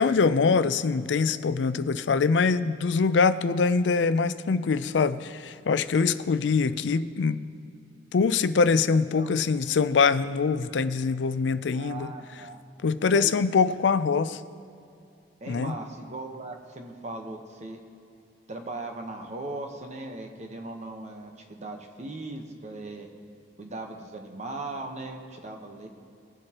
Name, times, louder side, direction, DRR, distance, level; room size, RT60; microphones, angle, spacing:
voice 1, 0.0-7.4 8.1-12.1 12.8-14.4 15.5-15.7, left 5 dB, 85° left, 14 dB, 0.4 m, -23 dB
voice 2, 11.7-12.6 13.1-13.3 15.4-17.8 18.5-23.1 23.6-25.9, right 2 dB, 40° right, 3 dB, 1.0 m, -38 dB
20.5 x 7.7 x 2.9 m, 2.5 s
head